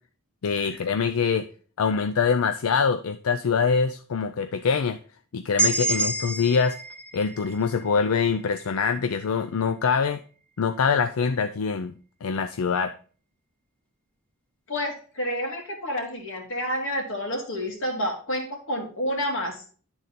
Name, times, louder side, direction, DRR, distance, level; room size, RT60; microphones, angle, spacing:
voice 1, 0.4-1.5 1.8-5.0 5.3-6.8 7.1-10.2 10.6-11.9 12.2-12.9, left 5 dB, 85° left, 8 dB, 0.5 m, -24 dB
sound 1, 5.6-9.4, right 3 dB, 5° left, 0.8 m, -29 dB
voice 2, 14.7-19.6, equal, 65° left, 2 dB, 2.1 m, -29 dB
10.5 x 3.9 x 4.1 m, 0.41 s
head